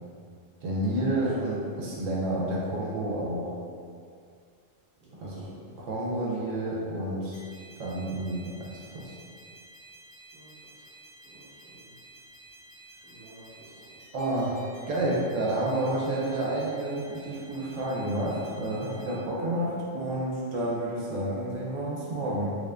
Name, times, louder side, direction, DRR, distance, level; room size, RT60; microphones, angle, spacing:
voice 1, 0.6-3.5 5.2-5.5 5.8-7.4 7.8-9.1 14.1-22.5, right 1 dB, 75° right, -6 dB, 1.0 m, -30 dB
voice 2, 5.0-5.8 10.3-10.9 11.2-11.9 13.1-13.9, right 2 dB, 35° right, -8 dB, 1.0 m, -53 dB
sound 1, 7.3-19.2, right 2 dB, 80° left, 1.8 m, -52 dB
3.4 x 2.4 x 3.3 m, 2.2 s
omnidirectional pair, 1.3 m